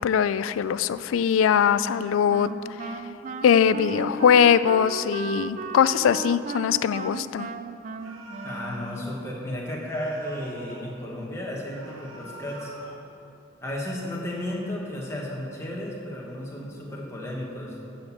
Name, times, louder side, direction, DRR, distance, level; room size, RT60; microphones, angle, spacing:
voice 1, 0.0-2.5 3.4-7.5, left 8 dB, 80° left, 15 dB, 0.3 m, -21 dB
Wind instrument woodwind instrument, 1.8-9.3, right 4 dB, 40° right, 0.3 m, -36 dB
sound 1, 8.0-9.1 9.8-10.9 11.7-13.0, right 2 dB, 90° right, 1.5 m, -45 dB
voice 2, 8.4-12.7 13.6-17.8, left 1 dB, 15° left, -4 dB, 1.4 m, -33 dB
11.5 x 4.3 x 7.2 m, 2.7 s
head